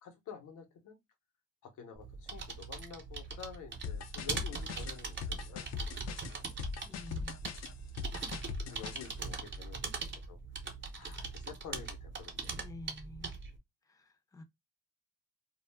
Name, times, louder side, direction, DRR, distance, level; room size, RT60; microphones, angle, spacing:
voice 1, 0.0-1.0 1.6-6.6 8.4-10.4 11.0-12.6, left 7 dB, 80° left, 0.9 m, -50 dB
sound 1, 1.9-13.6, right 4 dB, 40° right, 0.8 m, -41 dB
sound 2, 3.8-9.1, left 6 dB, 60° left, 0.5 m, -40 dB
voice 2, 6.8-7.4 12.5-13.3 13.8-14.4, left 2 dB, 10° left, 0.6 m, -49 dB
2.3 x 2.1 x 3.3 m
cardioid pair, 90°, 30 cm